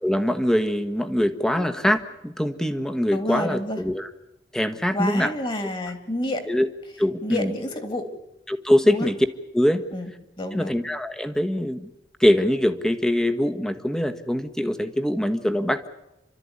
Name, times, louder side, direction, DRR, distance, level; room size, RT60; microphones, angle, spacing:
voice 1, 0.0-4.1 4.5-5.3 6.5-6.7 7.0-7.5 8.5-9.2 9.5-9.8 10.5-11.9 12.2-15.9, left 1 dB, 5° left, 7 dB, 1.4 m, -23 dB
voice 2, 1.4-1.8 3.1-3.8 4.9-6.5 7.2-8.1 8.8-9.1 9.9-10.1 10.4-10.8, left 1 dB, 30° left, 7 dB, 2.9 m, -29 dB
29.5 x 13.0 x 9.8 m, 0.91 s
head